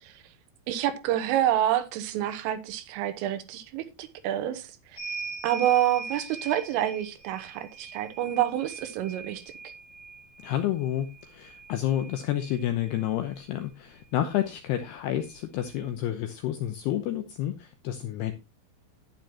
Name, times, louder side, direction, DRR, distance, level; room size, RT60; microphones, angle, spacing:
voice 1, 0.7-4.6 5.4-9.4, right 12 dB, 85° right, 3.8 m, -27 dB
sound 1, 5.0-13.1 14.4-14.5 14.7-15.8, right 4 dB, 25° left, 5.6 m, -42 dB
voice 2, 10.4-18.3, left 12 dB, 80° left, 2.4 m, -30 dB
11.5 x 10.5 x 2.9 m
omnidirectional pair, 5.7 m